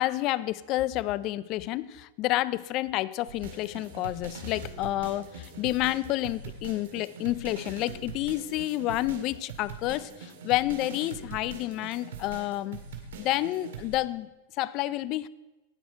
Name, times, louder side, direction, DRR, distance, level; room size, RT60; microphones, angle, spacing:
voice 1, 0.0-12.8 13.2-14.3 14.6-15.3, left 16 dB, 45° left, 19 dB, 0.4 m, -29 dB
sound 1, 3.3-14.0, right 4 dB, 75° right, 2.0 m, -43 dB
17.5 x 6.4 x 4.6 m, 1.1 s
hypercardioid pair, 115°, 0 cm